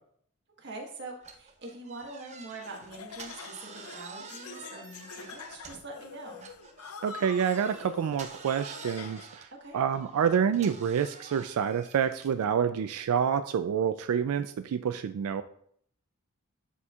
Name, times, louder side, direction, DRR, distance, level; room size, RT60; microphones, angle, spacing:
voice 1, 0.6-6.5 9.6-9.8, right 2 dB, 55° right, 0 dB, 1.4 m, -44 dB
sound 1, 1.2-6.0 6.4-12.4, right 5 dB, 30° right, 0.6 m, -48 dB
Laughter, 2.6-9.4, left 6 dB, 85° left, 0.6 m, -46 dB
voice 2, 7.0-9.5 9.7-15.4, right 7 dB, 80° right, 10 dB, 0.3 m, -28 dB
11.0 x 4.3 x 2.4 m, 0.64 s
head